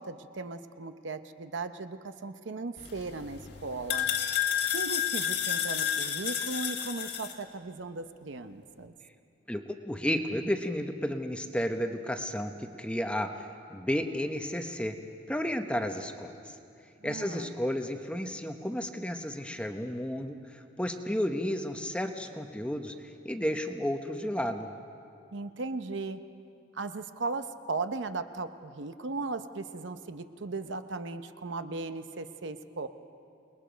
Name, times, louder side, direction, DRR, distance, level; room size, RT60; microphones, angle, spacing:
voice 1, 0.0-4.1 4.7-8.9 17.0-17.6 25.3-26.2 26.7-32.9, right 3 dB, 70° right, 9 dB, 0.8 m, -37 dB
sound 1, 2.8-7.3, left 9 dB, 55° left, 1.6 m, -31 dB
voice 2, 9.5-14.9 15.3-16.5 17.0-24.7, equal, 5° left, 5 dB, 0.8 m, -32 dB
28.5 x 20.0 x 5.1 m, 2.5 s
head